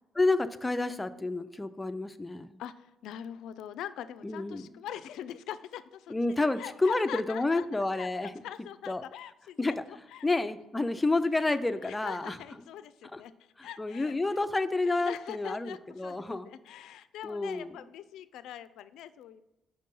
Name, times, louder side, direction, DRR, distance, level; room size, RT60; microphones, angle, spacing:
voice 1, 0.2-2.5 4.2-4.6 6.1-8.3 8.9-9.0 9.6-9.8 10.2-12.4 13.1-13.2 13.6-16.5 17.2-17.8, left 2 dB, 15° left, 11 dB, 0.4 m, -29 dB
voice 2, 2.6-10.3 11.8-14.4 15.0-19.4, left 10 dB, 85° left, 14 dB, 0.3 m, -43 dB
5.3 x 4.4 x 5.3 m, 0.99 s
cardioid pair, 90°, 0 cm